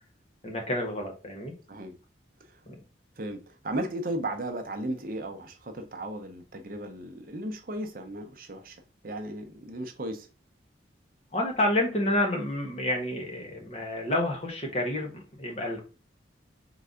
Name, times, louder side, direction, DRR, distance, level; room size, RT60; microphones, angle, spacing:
voice 1, 0.4-1.5 2.7-2.8 11.3-15.8, left 1 dB, 35° left, 1.2 m, -29 dB
voice 2, 3.2-8.8 9.0-10.3, right 1 dB, 50° right, 0.7 m, -35 dB
3.9 x 3.3 x 3.6 m
head